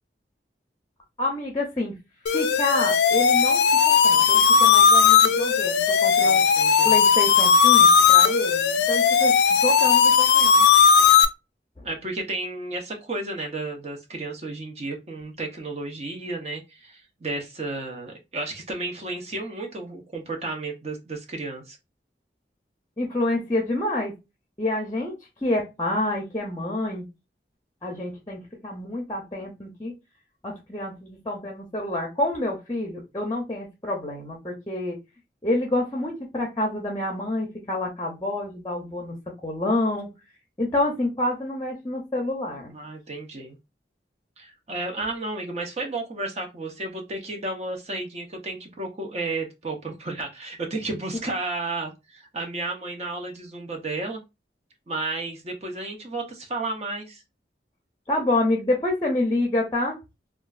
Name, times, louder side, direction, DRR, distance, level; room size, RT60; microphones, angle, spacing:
voice 1, 1.2-2.0 2.3-3.6 3.9-6.4 6.8-10.7 11.8-11.9 23.0-24.1 24.6-25.1 25.4-27.1 27.8-29.9 30.4-35.0 35.4-39.2 39.4-40.1 40.6-42.7 58.1-60.0, left 1 dB, 20° left, 1 dB, 0.6 m, -28 dB
sound 1, 2.3-11.3, left 7 dB, 75° left, 0.4 m, -17 dB
voice 2, 6.2-7.0 11.8-21.8 42.7-43.6 44.4-54.2 54.9-57.2, right 2 dB, 35° right, 3 dB, 0.6 m, -32 dB
3.0 x 2.3 x 2.3 m, 0.24 s
head